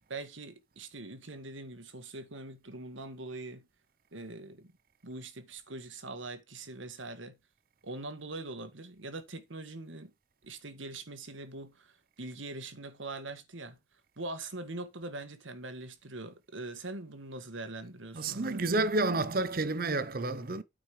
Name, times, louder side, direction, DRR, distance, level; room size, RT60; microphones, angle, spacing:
voice 1, 0.1-3.7 4.1-4.7 5.0-7.4 7.8-10.1 10.4-13.8 14.2-18.6, right 2 dB, 85° right, 1.6 m, -42 dB
voice 2, 18.1-20.6, right 2 dB, 50° right, 0.8 m, -30 dB
9.1 x 5.1 x 4.9 m
head